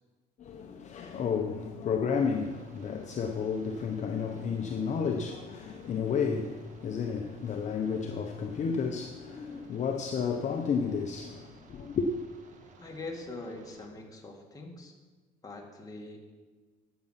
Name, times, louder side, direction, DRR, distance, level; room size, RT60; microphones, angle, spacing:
voice 1, 0.4-12.1, left 6 dB, 45° left, 0.8 m, -32 dB
sound 1, 2.2-13.9, right 4 dB, 50° right, 1.4 m, -57 dB
voice 2, 12.8-14.9 15.4-16.3, left 2 dB, 20° left, 2.2 m, -43 dB
11.5 x 7.9 x 5.8 m
cardioid pair, 110°, 17 cm